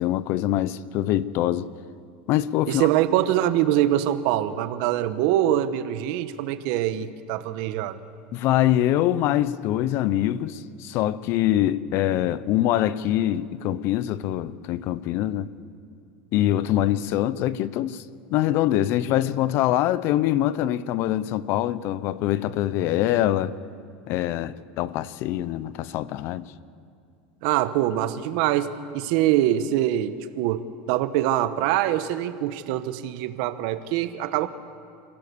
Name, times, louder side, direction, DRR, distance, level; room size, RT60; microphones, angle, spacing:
voice 1, 0.0-1.7 2.3-2.9 8.3-15.5 16.3-18.0 18.3-23.5 24.1-26.5, left 13 dB, 55° left, 0.8 m, -24 dB
voice 2, 2.7-8.0 27.4-34.5, right 12 dB, 65° right, 1.2 m, -24 dB
27.5 x 16.5 x 7.1 m
supercardioid pair, 125°, 5 cm